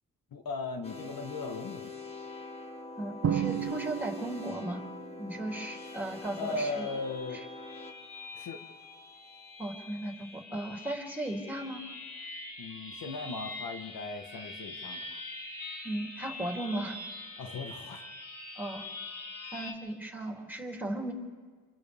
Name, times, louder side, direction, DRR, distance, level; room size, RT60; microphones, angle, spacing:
voice 1, 0.3-1.9 6.4-7.4 8.3-8.6 12.6-15.2 17.4-18.1, left 3 dB, 80° left, 5 dB, 1.5 m, -38 dB
sound 1, 0.8-9.8, left 3 dB, 15° left, 1.8 m, -45 dB
voice 2, 3.0-4.8 5.2-6.9 9.6-11.8 15.8-17.0 18.5-18.9 19.5-21.1, right 1 dB, 5° right, 0 dB, 3.4 m, -36 dB
Drum, 3.2-4.9, right 9 dB, 50° right, 0.7 m, -32 dB
sound 2, 5.7-19.7, left 2 dB, 60° left, 3.7 m, -44 dB
28.5 x 27.0 x 3.6 m, 1.5 s
cardioid pair, 80°, 35 cm